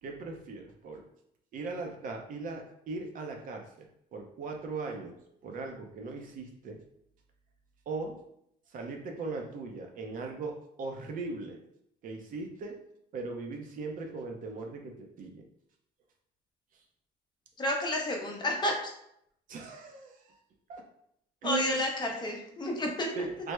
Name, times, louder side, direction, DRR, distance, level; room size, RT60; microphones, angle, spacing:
voice 1, 0.0-1.0 1.5-3.6 4.1-5.2 5.4-6.8 7.9-8.2 8.7-11.6 12.0-12.8 13.1-15.4 19.5-20.4 20.7-20.8 21.4-21.8 23.1-23.5, right 3 dB, 55° right, 2 dB, 0.6 m, -38 dB
voice 2, 17.6-18.7 21.4-23.1, left 1 dB, 25° left, 1 dB, 0.6 m, -30 dB
3.3 x 2.0 x 3.1 m, 0.74 s
cardioid pair, 110°, 17 cm